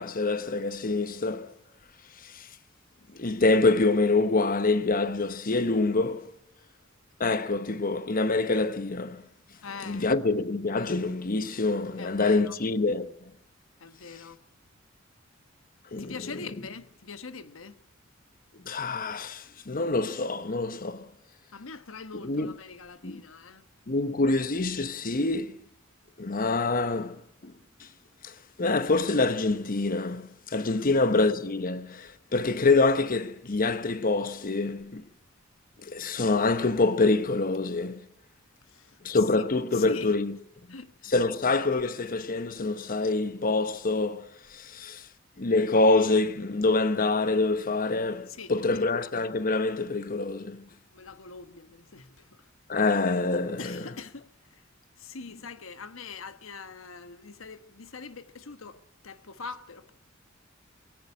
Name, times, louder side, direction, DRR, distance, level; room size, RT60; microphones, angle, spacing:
voice 1, 0.0-1.5 2.2-2.5 3.1-6.3 7.2-9.2 9.8-13.1 15.9-16.4 18.6-21.1 22.2-22.5 23.0-23.2 23.9-25.6 26.2-27.5 27.8-27.9 28.2-35.1 35.8-38.1 39.0-40.4 41.1-45.1 45.4-50.6 52.7-53.8, left 3 dB, 45° left, 1.0 m, -26 dB
voice 2, 9.6-10.1 12.0-12.6 13.8-14.4 16.0-17.8 21.5-23.6 38.6-39.0 39.7-40.1 40.7-41.1 48.3-48.8 50.9-52.5 53.6-54.6 55.0-59.9, left 4 dB, 90° left, 1.2 m, -43 dB
22.0 x 17.0 x 9.8 m
head